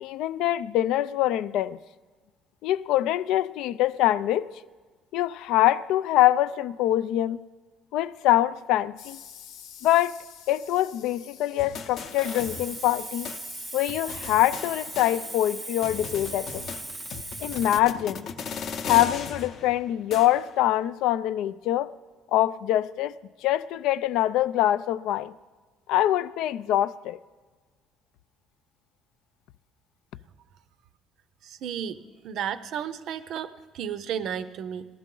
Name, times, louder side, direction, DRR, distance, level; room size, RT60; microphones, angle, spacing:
voice 1, 0.0-1.8 2.6-4.5 5.1-7.4 7.9-9.2 9.8-10.2 10.5-13.3 13.7-16.6 17.4-18.3 18.9-21.9 22.3-23.1 23.4-25.3 25.9-27.2, left 13 dB, 70° left, 0.3 m, -24 dB
sound 1, 9.0-14.3, left 8 dB, 85° left, 1.0 m, -49 dB
sound 2, 11.6-13.0 13.2-13.4 13.9-15.5 15.8-20.6, left 6 dB, 40° left, 0.7 m, -38 dB
Hiss, 12.0-17.8, right 2 dB, 10° right, 0.6 m, -38 dB
voice 2, 31.4-32.0 32.2-34.9, right 8 dB, 50° right, 0.6 m, -33 dB
19.0 x 13.5 x 3.8 m
cardioid pair, 175°, 0 cm